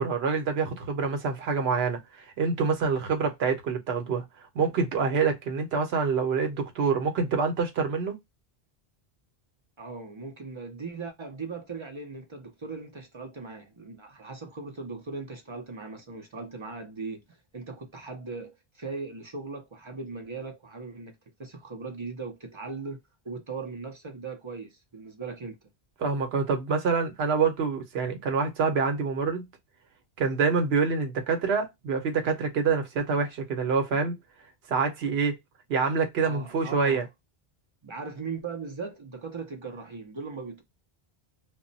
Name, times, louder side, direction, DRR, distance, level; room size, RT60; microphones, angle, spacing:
voice 1, 0.0-4.2 4.5-8.1 26.0-29.5 30.2-34.2 34.7-35.3 35.7-37.1, right 5 dB, 80° right, 0.9 m, -26 dB
voice 2, 9.8-25.6 36.2-37.1 37.8-40.6, right 4 dB, 40° right, 0.4 m, -39 dB
2.1 x 2.0 x 3.8 m
omnidirectional pair, 1.0 m